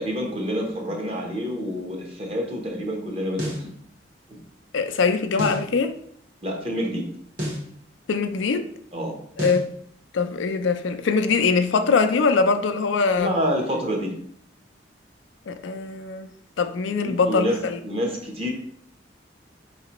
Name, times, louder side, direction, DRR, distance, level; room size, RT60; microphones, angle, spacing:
voice 1, 0.0-3.7 6.4-7.1 8.9-9.2 13.2-14.1 16.9-18.5, equal, 30° right, 0 dB, 0.9 m, -28 dB
sound 1, 3.4-3.7 5.4-5.7 7.4-7.7 9.4-9.7, equal, 45° right, 1.3 m, -29 dB
voice 2, 4.7-5.9 8.1-8.6 9.4-9.6 10.1-13.3 15.5-16.3 16.6-17.8, left 4 dB, 85° left, 8 dB, 0.4 m, -22 dB
5.0 x 3.2 x 3.0 m, 0.65 s
head